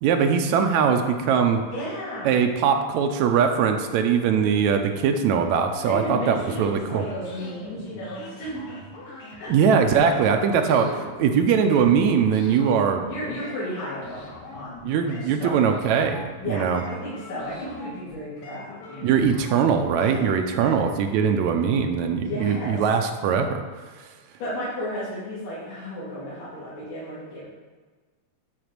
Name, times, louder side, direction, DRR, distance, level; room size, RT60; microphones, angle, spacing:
voice 1, 0.0-1.6 2.3-7.0 9.5-10.9 11.2-13.1 14.9-16.8 19.0-23.6, right 6 dB, 75° right, 5 dB, 1.9 m, -21 dB
voice 2, 1.7-2.3 5.9-8.7 9.4-9.6 10.0-10.4 10.7-11.1 13.1-15.7 16.4-19.2 20.0-20.1 20.6-20.7 22.2-22.8 24.4-27.4, equal, 85° left, -12 dB, 3.9 m, -34 dB
sound 1, 5.8-20.6, left 2 dB, 55° left, 2.0 m, -43 dB
11.0 x 4.0 x 6.7 m, 1.4 s
omnidirectional pair, 3.5 m